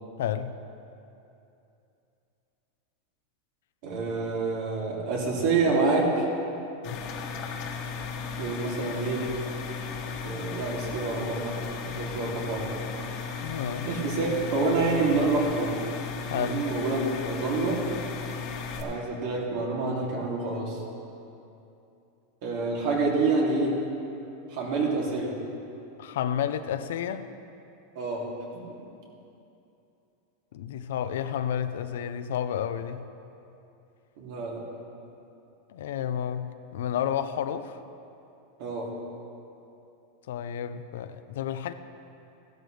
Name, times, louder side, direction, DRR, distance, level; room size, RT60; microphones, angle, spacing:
voice 1, 0.2-0.6 6.9-7.0 13.4-14.0 16.3-16.6 26.0-27.3 30.5-33.0 35.7-37.8 40.3-41.7, left 9 dB, 80° left, 10 dB, 0.6 m, -31 dB
voice 2, 3.8-6.2 8.4-9.3 10.2-12.7 13.8-15.8 16.3-17.8 18.8-20.8 22.4-23.8 24.5-25.4 27.9-28.6 34.2-34.6 38.6-38.9, right 3 dB, 60° right, -3 dB, 2.8 m, -27 dB
sound 1, 6.8-18.8, left 5 dB, 45° left, 1.4 m, -35 dB
15.5 x 12.0 x 3.4 m, 2.8 s
supercardioid pair, 150°, 0 cm